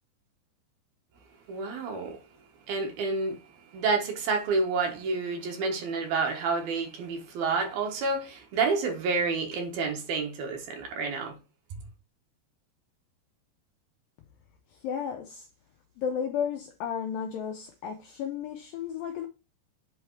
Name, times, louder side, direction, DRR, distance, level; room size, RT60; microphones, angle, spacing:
voice 1, 1.5-2.2 2.7-3.4 3.7-11.4, right 4 dB, 65° right, 3.0 m, -29 dB
voice 2, 14.8-15.5 16.0-19.3, left 7 dB, 90° left, 2.0 m, -33 dB
8.1 x 3.3 x 4.6 m
omnidirectional pair, 4.8 m